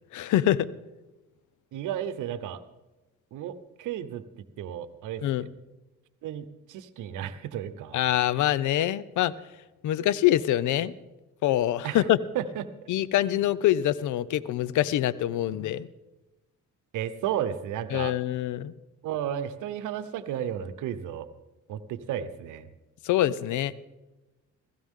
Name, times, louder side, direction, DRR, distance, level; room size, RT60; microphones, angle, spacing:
voice 1, 0.1-0.7 5.2-5.5 7.9-9.3 9.8-10.9 11.4-12.2 12.9-15.9 17.9-18.7 23.0-23.7, left 13 dB, 75° left, 19 dB, 0.6 m, -25 dB
voice 2, 1.7-2.6 3.3-4.2 4.6-5.5 6.2-8.0 11.8-12.1 12.3-12.7 16.9-18.1 19.0-21.3 21.7-22.7, right 10 dB, 85° right, 13 dB, 0.9 m, -33 dB
16.5 x 15.5 x 3.7 m, 1.1 s
cardioid pair, 90°, 30 cm